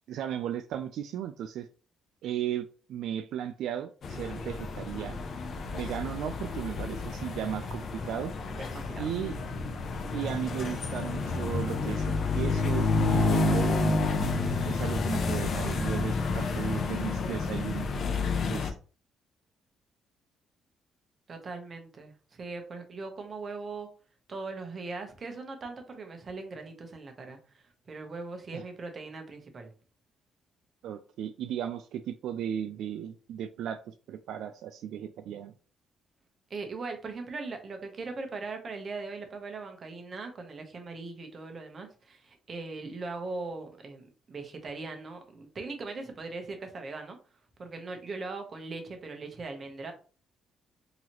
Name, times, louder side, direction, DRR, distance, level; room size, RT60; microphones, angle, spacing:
voice 1, 0.1-1.7 2.2-5.2 5.7-8.3 9.0-9.4 10.1-17.9 18.4-18.8 28.5-28.6 30.8-35.5, right 10 dB, 80° right, 0.3 m, -36 dB
sound 1, 4.0-18.7, left 3 dB, 55° left, 0.6 m, -30 dB
voice 2, 8.6-9.1 21.3-23.9 24.3-29.7 36.5-47.2 47.6-49.9, right 3 dB, 40° right, 0.9 m, -40 dB
3.9 x 2.9 x 3.0 m
cardioid pair, 115°, 0 cm